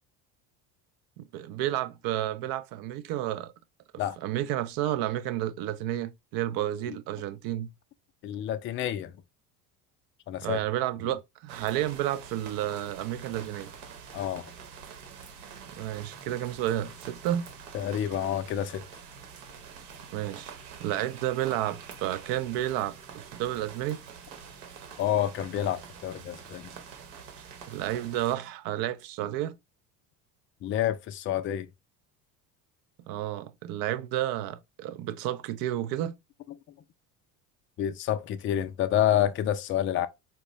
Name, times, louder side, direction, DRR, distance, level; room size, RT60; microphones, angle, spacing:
voice 1, 1.2-3.5 4.2-7.7 10.4-13.7 15.8-17.5 20.1-20.5 20.8-24.0 27.7-29.6 33.1-36.2, right 13 dB, 50° right, 0.6 m, -31 dB
voice 2, 8.2-9.1 10.3-10.6 14.1-14.4 17.7-18.8 25.0-26.7 30.6-31.7 37.8-40.1, left 11 dB, 30° left, 0.4 m, -28 dB
sound 1, 11.5-28.4, right 6 dB, 70° right, 1.1 m, -46 dB
4.2 x 2.2 x 3.0 m
hypercardioid pair, 75°, 45 cm